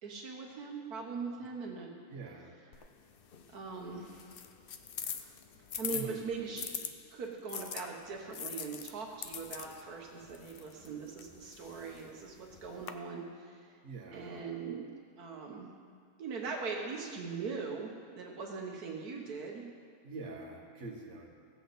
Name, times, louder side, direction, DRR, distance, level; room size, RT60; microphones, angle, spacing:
voice 1, 0.0-1.9 3.5-4.4 5.8-6.7 7.1-13.8 14.1-14.8 15.2-15.7 16.2-19.6, right 4 dB, 80° right, 0 dB, 1.6 m, -41 dB
voice 2, 2.1-2.5 5.9-6.2 6.5-6.9 13.8-14.4 20.0-21.4, right 3 dB, 50° right, -1 dB, 1.7 m, -45 dB
sound 1, 2.7-6.9 7.5-12.9, left 8 dB, 60° left, 0.5 m, -43 dB
16.5 x 7.7 x 4.1 m, 2.3 s
omnidirectional pair, 1.6 m